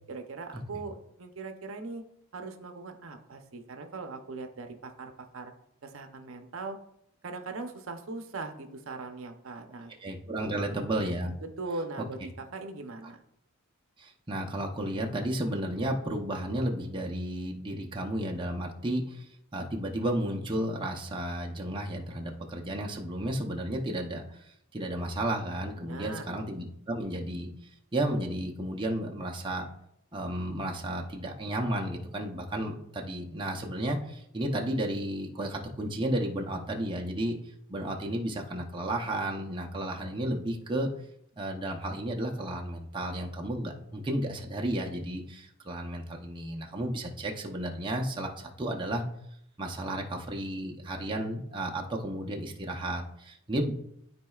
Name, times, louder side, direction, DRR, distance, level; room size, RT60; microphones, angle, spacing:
voice 1, 0.1-2.0 2.3-5.5 5.8-6.8 7.2-9.9 10.4-10.8 11.4-13.2 25.8-26.3, right 3 dB, 65° right, 6 dB, 0.7 m, -40 dB
voice 2, 10.0-11.3 14.0-24.4 24.7-27.5 27.9-29.7 30.1-37.4 37.7-40.9 41.4-49.0 49.6-53.7, right 1 dB, 25° right, 1 dB, 0.7 m, -33 dB
12.5 x 4.2 x 2.4 m, 0.74 s
head